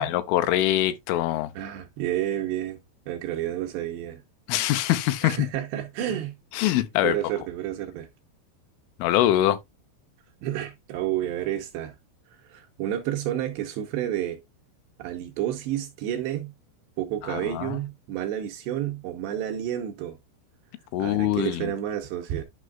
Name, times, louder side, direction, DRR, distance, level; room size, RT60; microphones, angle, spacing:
voice 1, 0.0-1.5 4.5-5.4 6.6-7.2 9.0-9.6 17.3-17.8 20.9-21.7, left 13 dB, 80° left, 3.2 m, -23 dB
voice 2, 1.6-2.8 3.1-4.2 5.2-6.3 7.0-8.1 10.4-12.0 12.3-14.4 15.0-16.5 17.0-20.2 21.0-22.4, right 11 dB, 80° right, 2.6 m, -30 dB
11.5 x 5.5 x 2.3 m
omnidirectional pair, 5.6 m